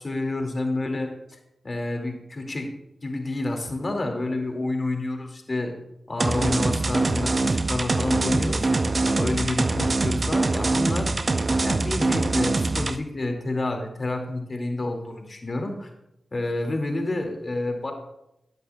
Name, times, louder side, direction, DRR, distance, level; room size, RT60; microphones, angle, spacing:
voice 1, 0.0-1.4 1.6-2.7 3.0-5.7 6.1-11.1 11.6-15.9 16.3-17.9, left 2 dB, 45° left, 3 dB, 2.2 m, -29 dB
sound 1, 6.2-13.0, right 3 dB, 45° right, 0.6 m, -23 dB
17.0 x 8.2 x 2.3 m, 0.84 s
cardioid pair, 45°, 0 cm